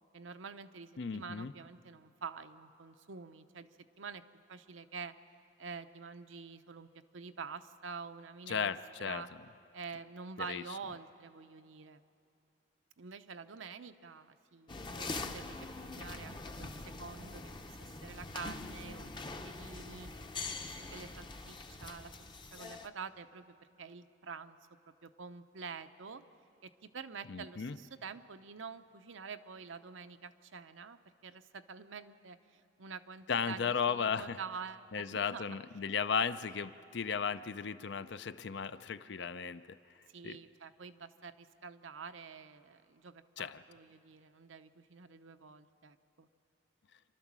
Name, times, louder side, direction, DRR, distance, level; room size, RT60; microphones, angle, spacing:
voice 1, 0.1-3.7 4.0-4.2 4.5-5.1 5.6-6.9 7.1-8.7 9.0-9.3 9.7-12.0 13.0-20.1 20.6-22.1 22.5-24.6 24.9-26.2 26.6-35.6 40.1-46.3, right 5 dB, 75° right, 10 dB, 0.7 m, -47 dB
voice 2, 1.0-1.5 8.5-9.2 10.5-10.6 27.3-27.8 33.3-34.4 34.9-39.8 40.2-40.4 43.4-43.6, left 6 dB, 60° left, 13 dB, 0.5 m, -35 dB
sound 1, 14.7-22.9, left 3 dB, 25° left, 0.7 m, -44 dB
28.5 x 12.5 x 7.4 m, 2.7 s
head